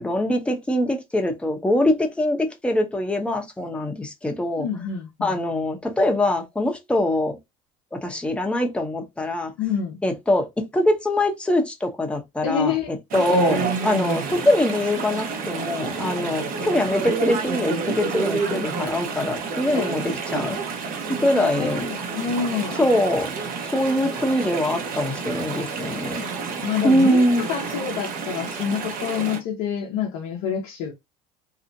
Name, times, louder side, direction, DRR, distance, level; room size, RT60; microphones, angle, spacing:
voice 1, 0.0-4.7 5.2-7.4 7.9-9.5 10.0-20.6 21.2-21.9 22.8-23.3 23.7-26.3 26.8-27.4, left 1 dB, 5° left, 0.7 m, -23 dB
voice 2, 4.6-5.4 9.6-10.0 12.4-13.4 19.7-20.0 21.3-22.8 26.6-30.9, left 7 dB, 70° left, 0.7 m, -27 dB
Chatter / Stream, 13.1-29.4, right 4 dB, 55° right, 1.0 m, -29 dB
2.7 x 2.1 x 2.5 m
supercardioid pair, 90°, 18 cm